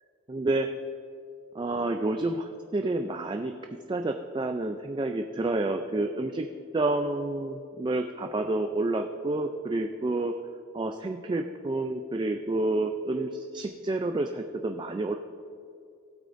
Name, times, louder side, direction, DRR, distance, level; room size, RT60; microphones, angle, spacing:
voice 1, 0.3-0.7 1.5-3.5 3.9-6.5 6.7-10.3 10.7-15.1, right 2 dB, 25° right, 5 dB, 0.3 m, -29 dB
16.0 x 8.3 x 2.6 m, 2.5 s
head